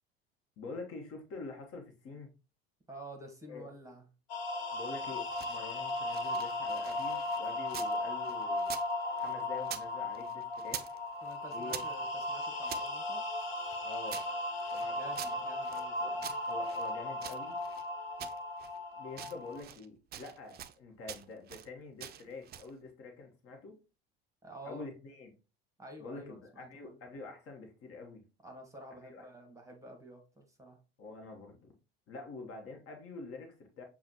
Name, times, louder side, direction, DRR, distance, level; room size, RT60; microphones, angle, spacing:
voice 1, 0.6-2.3 3.5-3.6 4.7-8.7 9.2-11.0 11.5-11.8 13.8-14.2 14.7-15.0 15.3-15.4 16.0-16.1 16.5-17.6 18.9-23.7 24.6-25.3 26.0-28.2 29.0-29.2 31.0-31.7 32.1-33.8, left 3 dB, 45° left, 3 dB, 1.1 m, -46 dB
voice 2, 2.9-4.0 11.2-13.2 14.8-16.3 24.4-24.8 25.8-27.0 28.4-30.8, right 1 dB, 10° right, 3 dB, 1.3 m, -50 dB
sound 1, 4.3-19.6, left 2 dB, 80° left, 1.1 m, -36 dB
sound 2, 5.1-8.0 8.2-9.9 10.1-11.0 11.2-12.9 13.4-15.9 16.2-17.9 18.2-18.8 19.1-19.9 20.1-20.8 21.1-21.7 22.0-22.7, right 10 dB, 30° right, 0.4 m, -46 dB
6.9 x 2.4 x 2.8 m, 0.32 s
hypercardioid pair, 75°, 32 cm